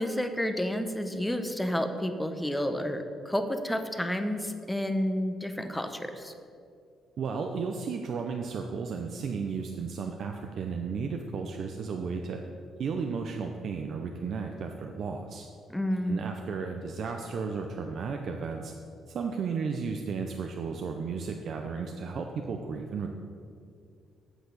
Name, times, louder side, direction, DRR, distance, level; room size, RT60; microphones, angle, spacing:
voice 1, 0.0-6.3 15.7-16.2, equal, 5° left, 7 dB, 0.8 m, -30 dB
voice 2, 7.2-12.4 12.8-15.5 16.0-18.7 19.1-23.1, right 5 dB, 60° right, 3 dB, 0.6 m, -34 dB
8.1 x 5.9 x 6.7 m, 2.3 s
cardioid pair, 90°, 0 cm